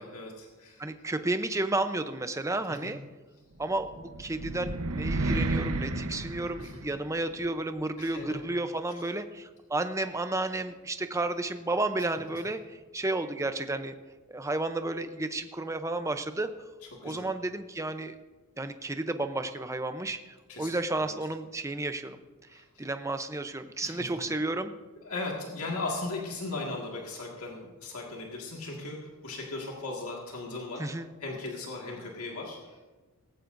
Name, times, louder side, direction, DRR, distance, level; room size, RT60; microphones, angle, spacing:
voice 1, 0.0-0.8 2.7-2.9 6.6-6.8 8.0-8.4 17.0-17.3 20.5-21.1 22.5-22.9 23.8-24.2 25.0-30.9 31.2-32.9, left 2 dB, 75° left, -1 dB, 1.9 m, -38 dB
voice 2, 0.8-3.0 3.6-13.9 14.3-16.5 17.0-18.1 18.6-20.2 20.6-22.2 22.8-24.7 30.8-31.1, right 2 dB, 15° right, 9 dB, 0.6 m, -32 dB
sound 1, 3.8-7.2, right 2 dB, 80° right, 1.0 m, -31 dB
18.0 x 15.0 x 2.6 m, 1.2 s
head